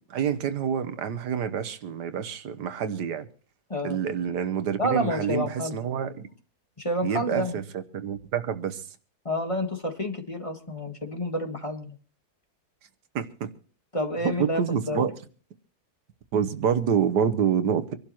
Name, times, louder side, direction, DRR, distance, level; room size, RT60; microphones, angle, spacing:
voice 1, 0.1-3.3 3.8-6.3 7.0-7.6 7.9-8.8 13.1-13.5 14.2-15.1 16.3-17.8, right 8 dB, 90° right, 1.6 m, -27 dB
voice 2, 4.8-5.8 6.8-7.6 9.2-11.9 13.9-15.1, equal, 20° left, 1.6 m, -29 dB
25.5 x 11.5 x 3.0 m
omnidirectional pair, 1.7 m